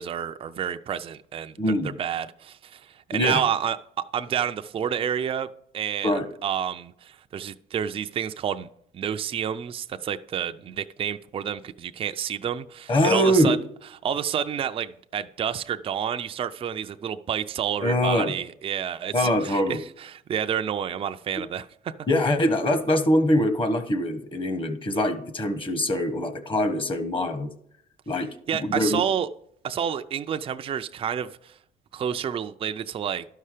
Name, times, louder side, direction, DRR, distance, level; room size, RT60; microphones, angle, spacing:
voice 1, 0.0-1.5 2.0-3.8 4.1-5.5 5.7-6.1 6.4-8.7 8.9-13.6 14.0-21.9 28.5-29.3 29.6-31.5 31.9-33.2, right 8 dB, 35° right, 0.4 m, -29 dB
voice 2, 1.6-1.9 3.1-3.4 6.0-6.3 12.9-13.6 17.8-18.3 19.1-19.8 22.1-27.5 28.1-29.0, left 1 dB, 30° left, 1.2 m, -23 dB
12.0 x 5.6 x 4.9 m
cardioid pair, 110°, 17 cm